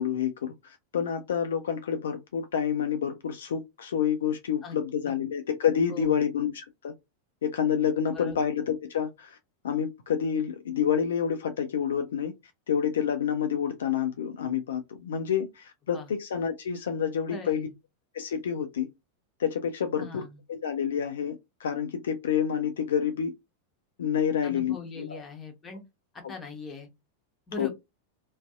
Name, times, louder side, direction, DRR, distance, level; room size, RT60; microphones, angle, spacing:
voice 1, 0.0-6.9 7.4-9.4 9.6-12.3 12.7-17.7 18.1-18.9 19.4-20.2 20.5-21.3 21.6-23.3 24.0-25.2 26.2-26.3 27.6-27.7, left 8 dB, 65° left, 0.3 m, -28 dB
voice 2, 5.9-6.2 8.1-8.4 15.9-16.1 17.3-17.7 20.0-20.4 24.4-25.8 26.1-26.9 27.5-27.7, left 4 dB, 20° left, 0.9 m, -40 dB
2.5 x 2.3 x 2.3 m
figure-of-eight pair, 90°, 0 cm